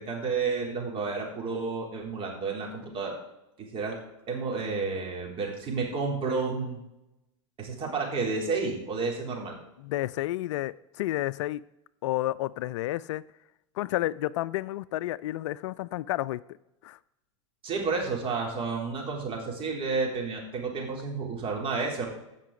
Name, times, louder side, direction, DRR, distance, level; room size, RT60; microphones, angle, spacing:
voice 1, 0.0-3.2 3.6-4.0 4.3-6.8 7.6-9.6 17.6-22.1, right 4 dB, 35° right, 3.8 m, -31 dB
voice 2, 9.8-11.6 12.0-13.2 13.8-16.4 16.8-17.0, left 15 dB, 65° left, 0.4 m, -31 dB
16.0 x 5.9 x 5.0 m
hypercardioid pair, 105°, 16 cm